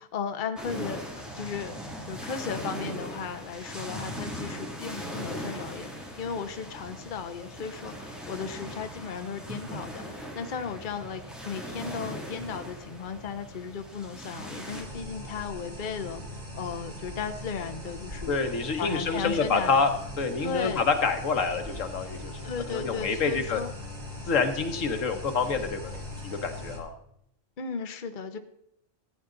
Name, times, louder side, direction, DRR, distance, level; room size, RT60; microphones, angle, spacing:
voice 1, 0.0-1.8 2.1-16.2 16.5-18.4 18.8-19.8 20.4-20.9 22.4-23.7 27.6-28.4, left 6 dB, 45° left, 8 dB, 0.9 m, -35 dB
sound 1, 0.6-14.8, equal, ahead, 2.2 m, -39 dB
sound 2, 14.7-26.8, left 1 dB, 35° right, 2.4 m, -40 dB
voice 2, 18.3-23.6 24.3-25.9 26.2-26.9, left 4 dB, 85° left, 7 dB, 1.6 m, -27 dB
15.0 x 9.3 x 3.8 m, 0.74 s
omnidirectional pair, 1.3 m